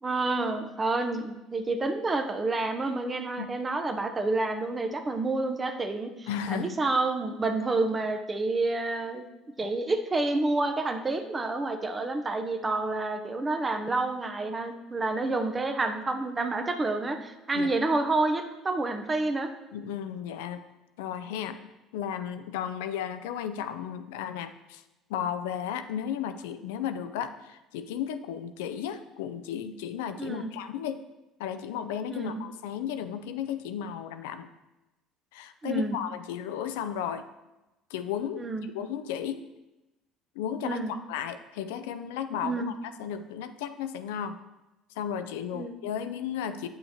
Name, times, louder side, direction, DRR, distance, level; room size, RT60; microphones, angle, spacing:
voice 1, 0.0-9.2 9.6-19.5 30.2-30.5 32.1-32.4 35.6-36.0 38.4-38.7 40.6-41.0 42.4-42.7 45.5-45.7, right 2 dB, 25° right, 6 dB, 0.7 m, -29 dB
voice 2, 6.3-6.7 9.6-9.7 17.5-17.8 19.7-20.6 21.0-24.8 25.1-31.0 31.4-34.5 35.3-37.2 37.9-39.4 40.4-42.7 43.0-44.4 45.0-46.7, left 9 dB, 85° left, 10 dB, 0.4 m, -34 dB
7.9 x 5.5 x 2.8 m, 1.0 s
supercardioid pair, 75°, 0 cm